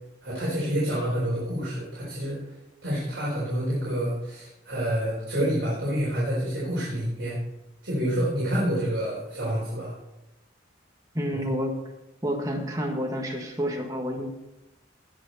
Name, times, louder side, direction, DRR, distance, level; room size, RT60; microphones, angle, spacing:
voice 1, 0.2-2.5 2.8-7.4 7.8-9.9 11.3-11.4, equal, 60° right, -7 dB, 4.4 m, -28 dB
voice 2, 11.1-11.7 12.2-14.3, equal, 20° right, 1 dB, 1.7 m, -29 dB
19.0 x 6.4 x 4.2 m, 0.94 s
head